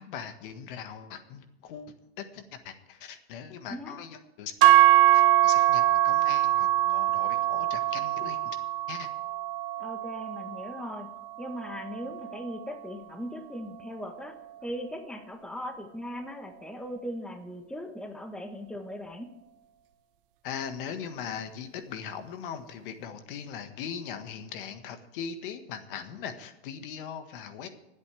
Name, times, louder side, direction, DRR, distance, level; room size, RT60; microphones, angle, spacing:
voice 1, 0.0-8.6 8.9-9.1 20.4-27.7, left 7 dB, 60° left, 8 dB, 1.7 m, -40 dB
sound 1, 4.6-12.8, right 14 dB, 60° right, 1.1 m, -24 dB
voice 2, 9.8-11.1 11.4-14.4 14.6-19.3, equal, 5° left, 6 dB, 1.2 m, -39 dB
25.0 x 8.5 x 3.4 m, 0.97 s
hypercardioid pair, 120°, 31 cm